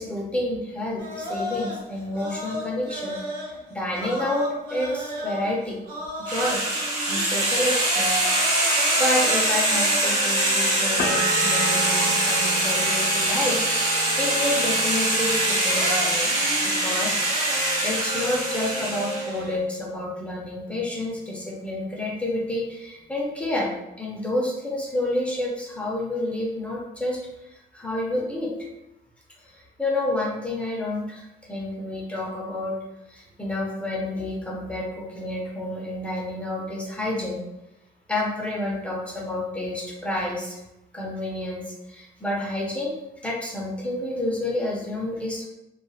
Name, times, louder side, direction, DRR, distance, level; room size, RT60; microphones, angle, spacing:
voice 1, 0.0-4.4 4.7-5.8 6.2-6.6 7.1-8.3 8.7-16.3 16.6-28.5 29.4-32.8 33.1-37.4 38.1-40.6 40.9-42.9 43.2-45.5, left 1 dB, 5° left, -3 dB, 0.5 m, -29 dB
sound 1, 1.0-7.4 7.7-14.5 15.5-19.6, equal, 80° right, 0.8 m, -35 dB
sound 2, 6.3-19.3, right 1 dB, 45° right, 1.2 m, -23 dB
sound 3, 11.0-16.6 16.9-17.7, right 2 dB, 70° left, 0.5 m, -33 dB
2.6 x 2.3 x 2.3 m, 0.92 s
cardioid pair, 110°, 17 cm